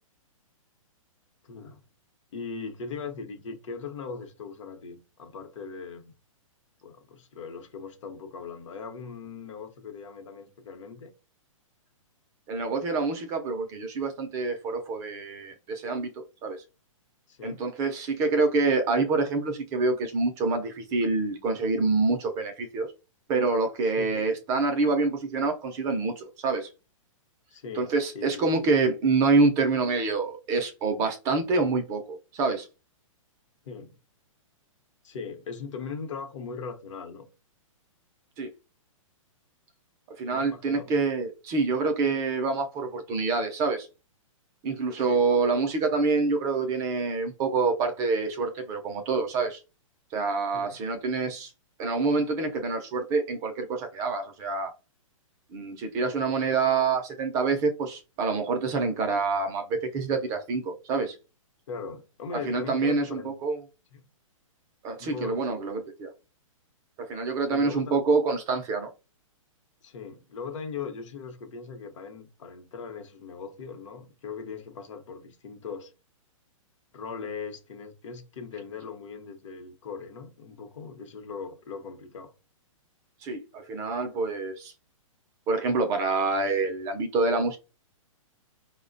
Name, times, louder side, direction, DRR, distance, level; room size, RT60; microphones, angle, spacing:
voice 1, 1.4-1.8 2.3-6.1 6.8-11.1 17.3-17.7 23.8-24.3 27.5-28.7 33.6-33.9 35.0-37.3 40.3-40.9 45.0-45.3 50.5-50.8 61.7-63.3 63.9-64.1 65.0-65.6 67.5-68.0 69.8-75.9 76.9-82.3, left 5 dB, 65° left, 0.8 m, -39 dB
voice 2, 12.5-16.6 17.4-22.9 23.3-26.7 27.7-32.7 38.4-38.5 40.2-43.9 44.6-49.6 50.1-51.5 51.8-54.7 55.5-61.2 62.3-63.6 64.8-66.1 67.0-68.9 83.2-84.7 85.5-87.6, right 4 dB, 20° right, 0.4 m, -26 dB
4.8 x 2.1 x 2.5 m
hypercardioid pair, 150°, 17 cm